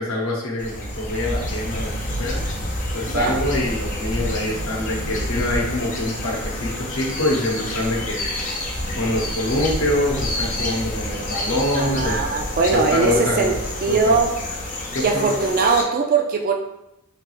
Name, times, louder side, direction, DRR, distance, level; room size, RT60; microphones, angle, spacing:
voice 1, 0.0-2.4 2.9-8.2 9.0-12.2 12.7-13.5 13.9-14.1 14.9-15.3, left 1 dB, 65° left, -2 dB, 0.8 m, -25 dB
sound 1, 0.6-15.8, left 1 dB, 35° left, 0.6 m, -28 dB
voice 2, 3.1-3.4 11.8-13.5 13.8-14.3 15.0-16.5, right 4 dB, 40° right, 3 dB, 0.3 m, -20 dB
3.3 x 2.4 x 3.0 m, 0.89 s
head